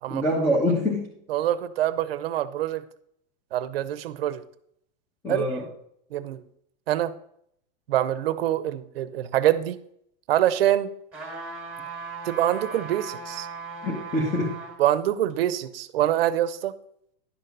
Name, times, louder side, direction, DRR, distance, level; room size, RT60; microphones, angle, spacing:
voice 1, 0.1-1.1 5.2-5.7 13.8-14.6, left 1 dB, 10° left, -3 dB, 1.3 m, -25 dB
voice 2, 1.3-2.8 3.5-4.4 5.3-5.5 6.1-6.4 6.9-7.1 7.9-9.8 10.3-10.9 12.2-13.5 14.8-16.7, right 12 dB, 85° right, 15 dB, 0.8 m, -25 dB
sound 1, 11.1-14.8 15.3-15.4, right 4 dB, 5° right, 2.2 m, -37 dB
11.0 x 6.7 x 4.0 m, 0.69 s
supercardioid pair, 175°, 29 cm